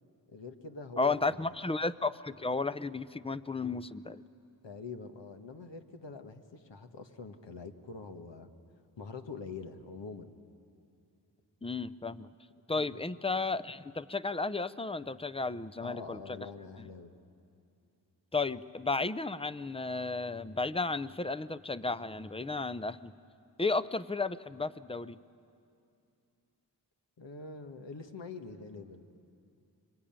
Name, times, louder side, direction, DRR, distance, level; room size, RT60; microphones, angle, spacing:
voice 1, 0.3-1.2 4.6-8.5 9.0-10.3 12.7-13.0 15.8-17.1 27.2-29.0, left 4 dB, 75° left, 6 dB, 1.5 m, -45 dB
voice 2, 1.0-4.2 11.6-12.3 12.7-16.4 18.3-23.1 23.6-25.2, left 3 dB, 15° left, 16 dB, 0.6 m, -33 dB
26.0 x 22.5 x 8.9 m, 2.6 s
cardioid pair, 50°, 44 cm